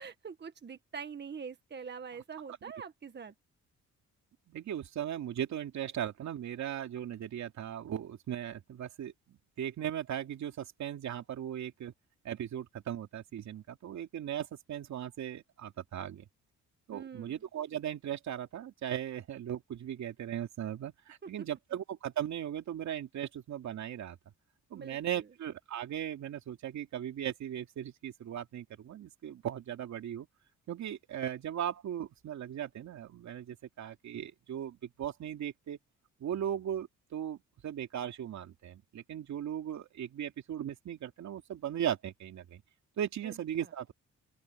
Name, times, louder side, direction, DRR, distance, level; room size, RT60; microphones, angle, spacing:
voice 1, 0.0-3.3 16.9-17.4 21.2-21.5 24.7-25.2 43.2-43.3 43.6-43.7, right 6 dB, 35° right, 1.6 m, -44 dB
voice 2, 4.5-11.9 12.2-16.2 16.9-24.2 24.7-30.3 30.7-35.8 36.2-42.6 43.0-43.9, right 10 dB, 70° right, 2.7 m, -38 dB
open air
cardioid pair, 90°, 30 cm